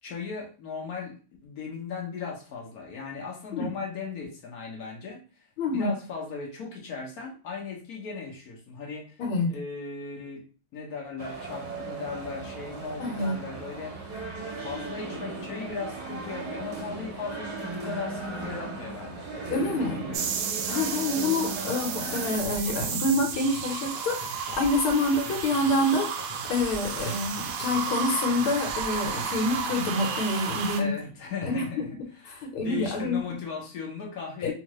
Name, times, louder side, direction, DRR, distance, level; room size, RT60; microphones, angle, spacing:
voice 1, 0.0-9.2 9.5-14.0 14.5-20.3 21.1-21.3 30.8-34.5, left 5 dB, 55° left, -1 dB, 1.1 m, -37 dB
voice 2, 5.6-5.9 9.2-9.5 13.0-13.4 19.5-20.0 20.7-26.1 26.4-30.9 31.4-31.9 32.3-33.2 34.4-34.5, left 2 dB, 75° left, 1 dB, 1.7 m, -27 dB
sound 1, 11.2-22.4, right 3 dB, 60° right, 1.1 m, -37 dB
sound 2, 20.1-30.8, right 7 dB, 80° right, 1.4 m, -33 dB
sound 3, 22.4-30.7, left 1 dB, 90° left, 0.7 m, -43 dB
3.7 x 2.5 x 3.0 m, 0.36 s
omnidirectional pair, 2.4 m